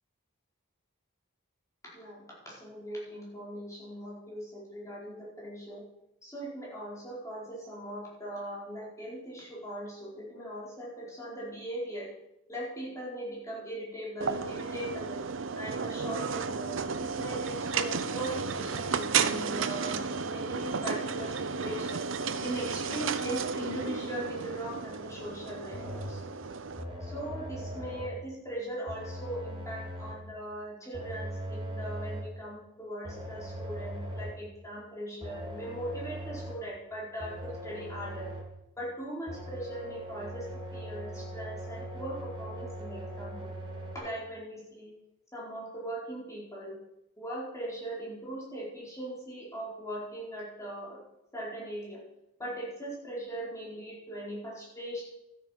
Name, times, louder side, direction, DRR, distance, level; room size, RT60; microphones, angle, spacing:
voice 1, 1.9-5.8 6.2-12.1 12.5-15.2 15.6-22.1 22.4-26.2 27.1-38.3 38.8-43.4 43.9-44.9 45.3-46.7 47.2-51.0 51.3-52.0 52.4-55.0, right 1 dB, 15° left, -6 dB, 4.7 m, -40 dB
sound 1, 14.2-26.8, right 5 dB, 85° right, 0.8 m, -33 dB
sound 2, 25.7-26.2 26.8-28.3 28.9-30.3 30.9-32.4 33.0-34.5 35.2-36.7 37.2-38.6 39.3-44.0, equal, 25° right, 2.6 m, -40 dB
13.5 x 8.7 x 5.9 m, 0.85 s
head